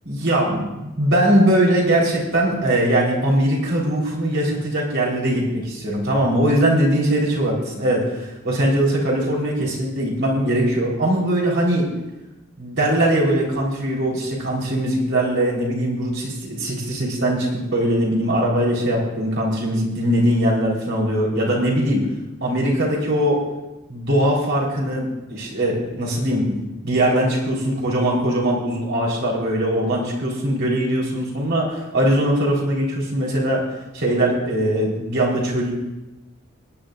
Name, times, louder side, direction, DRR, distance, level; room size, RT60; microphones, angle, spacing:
voice 1, 0.0-11.8 12.6-22.0 22.4-23.4 23.9-26.6 26.8-33.6 33.9-35.7, right 1 dB, 60° right, -3 dB, 4.2 m, -21 dB
24.5 x 10.5 x 2.6 m, 1.0 s
head